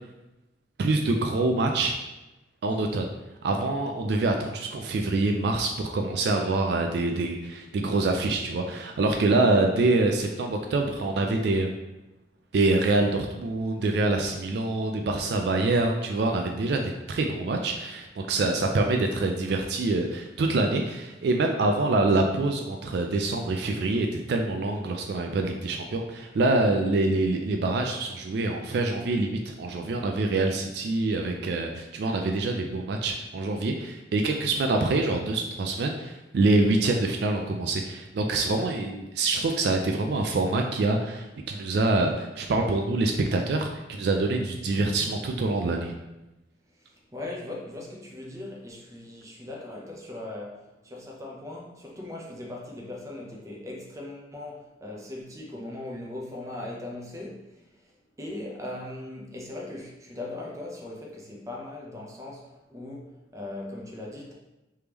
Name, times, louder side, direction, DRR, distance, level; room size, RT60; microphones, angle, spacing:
voice 1, 0.8-2.0 2.6-3.1 3.4-11.7 12.5-45.9, right 2 dB, 60° right, 3 dB, 0.3 m, -25 dB
voice 2, 46.8-64.3, left 2 dB, 15° right, -2 dB, 0.6 m, -39 dB
3.4 x 3.4 x 2.9 m, 0.99 s
head